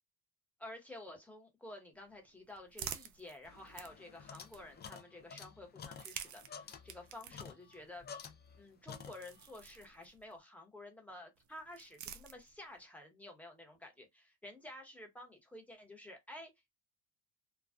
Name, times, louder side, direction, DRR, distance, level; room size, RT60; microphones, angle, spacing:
voice 1, 0.6-8.0 8.6-16.5, left 1 dB, 5° left, 0.9 m, -51 dB
sound 1, 1.9-5.0 5.8-10.4 11.4-12.8, right 10 dB, 40° right, 0.4 m, -51 dB
sound 2, 3.4-8.6 8.9-9.5, left 6 dB, 25° left, 0.4 m, -51 dB
2.3 x 2.3 x 2.3 m
supercardioid pair, 85°, 45 cm